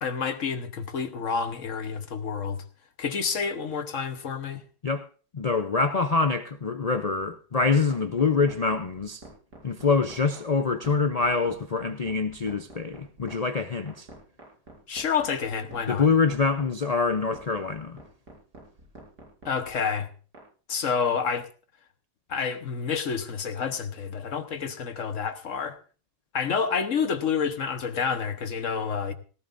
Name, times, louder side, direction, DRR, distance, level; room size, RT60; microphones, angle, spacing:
voice 1, 0.0-2.6 3.0-4.6 14.9-16.1 19.4-20.1 20.7-21.5 22.3-25.8 26.3-29.1, left 6 dB, 55° left, 1.3 m, -29 dB
voice 2, 5.3-9.2 9.6-14.1 15.9-18.0, left 4 dB, 85° left, 0.3 m, -25 dB
sound 1, 7.6-20.4, right 2 dB, 75° right, 5.3 m, -47 dB
18.0 x 14.5 x 2.6 m
omnidirectional pair, 1.7 m